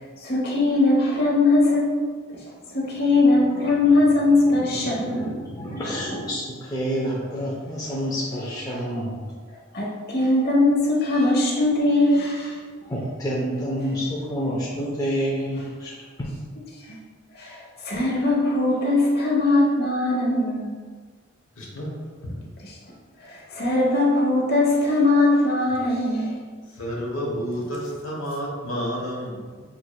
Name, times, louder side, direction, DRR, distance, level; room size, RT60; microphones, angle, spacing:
voice 1, 0.2-2.0 2.7-5.4 9.7-12.6 16.9-17.0 17.4-20.8 22.6-22.8 23.3-26.4, left 2 dB, 50° left, -4 dB, 1.0 m, -20 dB
voice 2, 3.1-4.1 4.5-9.3 12.8-16.3, equal, 15° left, -5 dB, 0.5 m, -29 dB
voice 3, 21.6-21.9 22.2-22.3 26.8-29.6, equal, 70° left, -3 dB, 1.2 m, -30 dB
5.9 x 3.1 x 2.3 m, 1.5 s
head